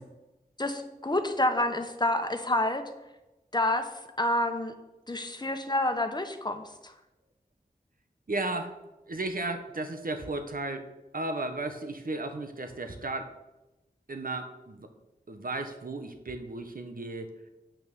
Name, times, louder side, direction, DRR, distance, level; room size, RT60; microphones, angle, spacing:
voice 1, 0.6-2.8 3.5-3.9 4.2-4.7 5.1-6.6, left 1 dB, 30° left, 6 dB, 1.2 m, -28 dB
voice 2, 8.3-8.7 9.1-10.8 11.1-13.3 14.1-14.9 15.3-17.3, right 2 dB, 70° right, 6 dB, 1.3 m, -34 dB
8.9 x 6.1 x 6.9 m, 0.99 s
wide cardioid pair, 60°, 15 cm